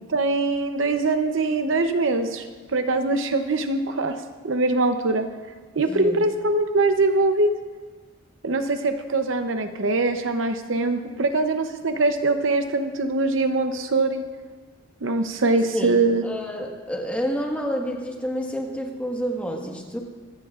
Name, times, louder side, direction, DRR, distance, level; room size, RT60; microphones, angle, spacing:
voice 1, 0.1-2.5 2.7-4.2 4.4-5.3 5.7-7.5 8.4-14.2 15.0-16.3, right 2 dB, 75° right, 7 dB, 0.8 m, -22 dB
voice 2, 5.9-6.2 15.7-15.9 16.2-20.0, equal, 5° left, 0 dB, 1.5 m, -29 dB
25.0 x 15.0 x 2.5 m, 1.4 s
head